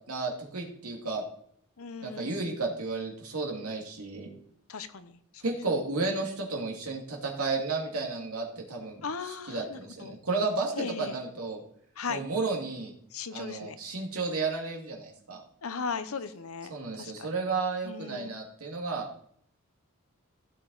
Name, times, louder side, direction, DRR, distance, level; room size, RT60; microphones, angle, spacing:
voice 1, 0.1-1.3 2.0-4.3 5.4-9.0 9.5-11.6 12.1-12.9 13.3-15.4 16.7-19.1, right 3 dB, 85° right, 0 dB, 2.5 m, -32 dB
voice 2, 1.8-2.4 4.7-5.4 9.0-10.2 10.7-11.2 12.0-12.2 13.1-13.8 15.6-16.7 17.0-17.3 17.8-18.4, left 5 dB, 75° left, 11 dB, 0.9 m, -37 dB
15.5 x 7.1 x 4.0 m, 0.65 s
head